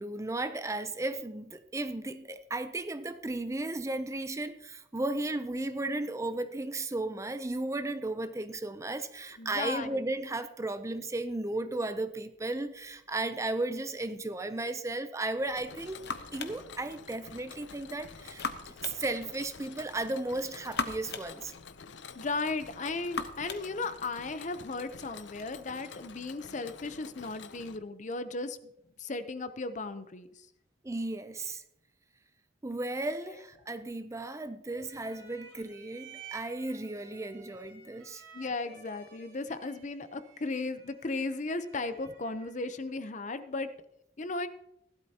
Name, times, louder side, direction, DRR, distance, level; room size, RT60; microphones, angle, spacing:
voice 1, 0.0-16.0 16.3-18.5 18.8-21.5 30.8-31.6 32.6-38.2, right 2 dB, 15° right, 0.5 m, -35 dB
voice 2, 9.4-10.0 22.1-28.7 29.0-30.3 34.7-34.8 38.3-43.7 44.2-44.5, left 3 dB, 40° left, 0.7 m, -36 dB
sound 1, 15.4-25.5, left 4 dB, 65° left, 1.0 m, -42 dB
Mechanisms, 15.5-27.8, left 6 dB, 85° left, 0.7 m, -49 dB
sound 2, 34.7-42.9, right 6 dB, 80° right, 2.7 m, -54 dB
16.0 x 12.0 x 2.8 m
head